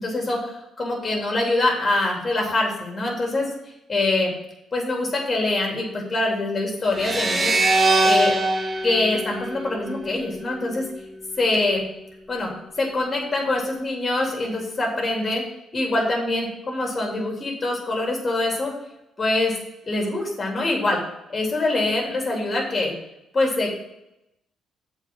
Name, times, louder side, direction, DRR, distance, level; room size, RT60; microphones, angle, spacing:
voice 1, 0.0-3.5 3.9-4.3 4.7-7.5 8.0-8.4 8.8-10.8 11.4-11.9 12.3-12.5 12.8-15.4 15.7-18.7 19.2-19.6 19.8-21.0 21.3-22.9 23.3-23.7, left 2 dB, 30° left, -1 dB, 3.0 m, -24 dB
sound 1, 7.0-10.3, right 2 dB, 20° right, 1.2 m, -22 dB
7.1 x 4.9 x 7.1 m, 0.87 s
figure-of-eight pair, 45°, 0 cm